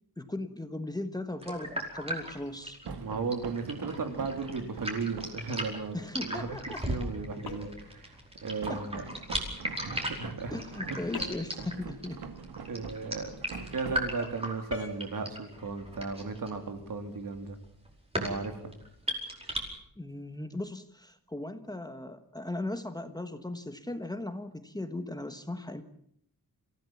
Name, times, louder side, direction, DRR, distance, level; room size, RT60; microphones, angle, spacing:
voice 1, 0.2-2.8 5.9-6.8 8.7-8.8 10.5-12.2 20.0-25.8, left 2 dB, 10° left, 8 dB, 1.3 m, -37 dB
sound 1, 1.4-19.6, right 1 dB, 15° right, 5.0 m, -37 dB
sound 2, 2.9-5.5 8.6-14.5, right 5 dB, 85° right, 2.2 m, -44 dB
voice 2, 3.0-9.0 9.8-10.5 10.9-11.0 12.7-13.3 13.6-17.6 18.2-18.7, right 4 dB, 60° right, 6 dB, 3.2 m, -36 dB
sound 3, 7.4-7.9 11.1-11.6 14.7-15.0, left 4 dB, 80° left, 3.5 m, -40 dB
27.5 x 16.0 x 7.2 m, 0.67 s
wide cardioid pair, 165°, 37 cm